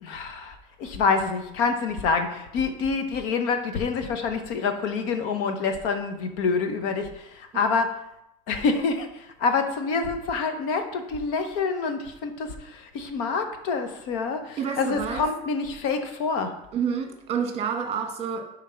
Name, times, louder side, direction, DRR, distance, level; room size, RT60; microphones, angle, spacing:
voice 1, 0.0-8.0 8.5-16.6, left 4 dB, 65° left, 7 dB, 1.1 m, -27 dB
voice 2, 14.6-15.2 16.7-18.4, right 7 dB, 30° right, 4 dB, 1.4 m, -28 dB
7.3 x 3.7 x 5.7 m, 0.83 s
supercardioid pair, 145°, 21 cm